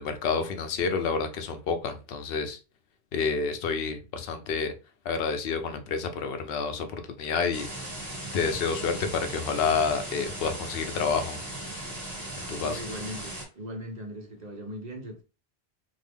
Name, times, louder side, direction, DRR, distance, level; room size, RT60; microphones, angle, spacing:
voice 1, 0.0-2.6 3.1-4.7 5.1-7.7 8.3-11.4 12.5-12.8, left 5 dB, 70° left, 0.8 m, -29 dB
sound 1, 7.5-13.5, right 1 dB, 15° right, 1.4 m, -38 dB
voice 2, 12.6-15.2, equal, 45° right, 0.9 m, -39 dB
3.7 x 2.0 x 3.4 m
omnidirectional pair, 1.1 m